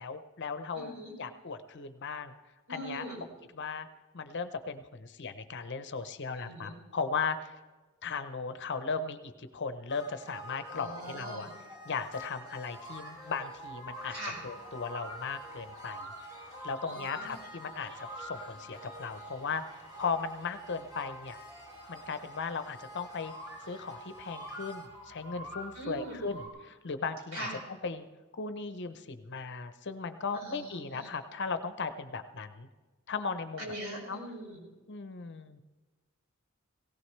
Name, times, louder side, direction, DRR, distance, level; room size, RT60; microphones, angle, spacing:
voice 1, 0.0-0.9 1.2-2.3 2.7-3.1 3.5-3.9 4.1-7.6 8.0-11.5 11.9-14.2 14.4-16.1 16.6-21.4 21.9-23.3 23.7-27.5 27.8-28.0 28.3-32.7 33.1-33.7 34.1-34.2 34.9-35.6, left 5 dB, 55° left, 10 dB, 0.8 m, -37 dB
voice 2, 0.7-1.1 2.7-3.2 6.4-6.7 10.7-11.5 14.1-14.4 16.8-17.3 25.7-26.2 27.3-27.6 30.3-31.1 33.6-34.6, right 1 dB, 70° right, -2 dB, 5.2 m, -41 dB
sound 1, 9.9-24.9, equal, 20° right, 2.0 m, -48 dB
sound 2, 12.7-26.5, equal, 85° right, 5.2 m, -48 dB
17.5 x 17.5 x 3.3 m, 1.3 s
head